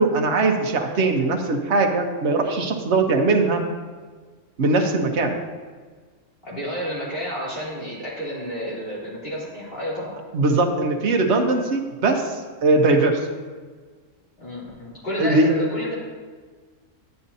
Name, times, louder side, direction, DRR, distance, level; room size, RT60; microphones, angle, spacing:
voice 1, 0.0-3.6 4.6-5.3 10.3-13.2 15.2-15.5, right 3 dB, 60° right, 2 dB, 1.2 m, -20 dB
voice 2, 6.4-10.1 14.4-16.0, equal, 45° left, -8 dB, 3.4 m, -30 dB
10.0 x 9.3 x 2.7 m, 1.5 s
omnidirectional pair, 1.4 m